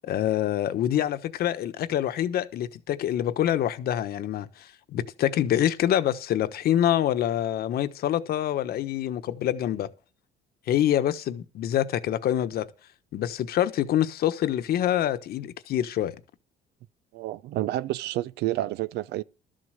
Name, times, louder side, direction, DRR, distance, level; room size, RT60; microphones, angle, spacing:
voice 1, 0.0-9.9 10.7-12.7 13.1-16.2, left 11 dB, 65° left, 1.2 m, -26 dB
voice 2, 17.1-19.2, right 15 dB, 85° right, 0.7 m, -29 dB
12.5 x 7.7 x 6.5 m
cardioid pair, 110°, 17 cm